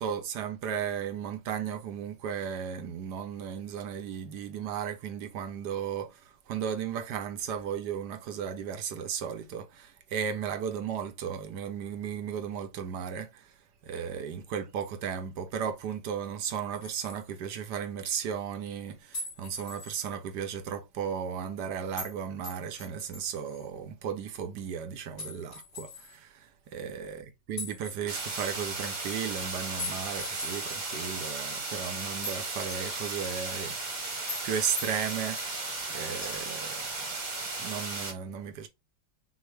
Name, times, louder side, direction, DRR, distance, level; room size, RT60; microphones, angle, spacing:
voice 1, 0.0-37.1 37.4-38.7, right 8 dB, 70° right, 1.2 m, -35 dB
sound 1, 16.7-17.2 19.1-20.0 22.0-22.1 22.4-23.7 25.2-26.2 27.6-28.8 29.8-30.9 31.3-31.4 32.2-32.4 32.7-33.5 34.3-34.5 34.8-35.5 36.2-36.4, left 3 dB, 45° left, 3.0 m, -41 dB
sound 2, 28.1-38.1, right 3 dB, 30° right, 1.1 m, -35 dB
6.0 x 2.5 x 3.3 m
omnidirectional pair, 2.0 m